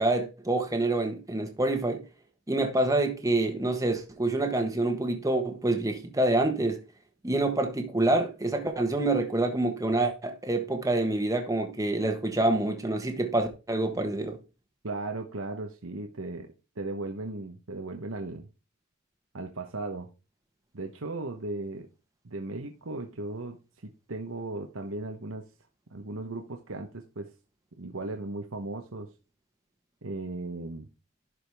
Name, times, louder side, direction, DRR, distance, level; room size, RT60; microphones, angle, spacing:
voice 1, 0.0-2.0 2.5-6.8 7.2-14.4, right 2 dB, 15° right, 1.3 m, -27 dB
voice 2, 14.8-16.5 16.8-18.5 19.3-20.1 20.7-21.9 22.2-25.4 25.9-27.3 27.8-29.1 30.0-30.9, right 2 dB, 70° right, 1.1 m, -36 dB
11.5 x 5.0 x 3.5 m
head